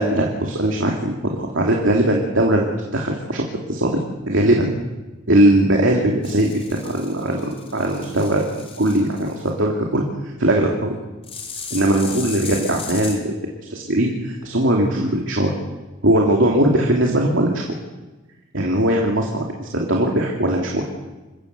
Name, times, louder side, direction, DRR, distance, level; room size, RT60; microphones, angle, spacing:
voice 1, 0.0-3.4 3.7-4.7 5.3-10.1 10.4-11.0 11.7-13.3 13.7-15.5 16.0-17.6 18.5-20.8, right 1 dB, 75° right, 0 dB, 2.8 m, -20 dB
sound 1, 6.2-9.5 11.2-13.2, left 5 dB, 30° left, 3.8 m, -36 dB
27.5 x 15.0 x 8.3 m, 1.2 s
head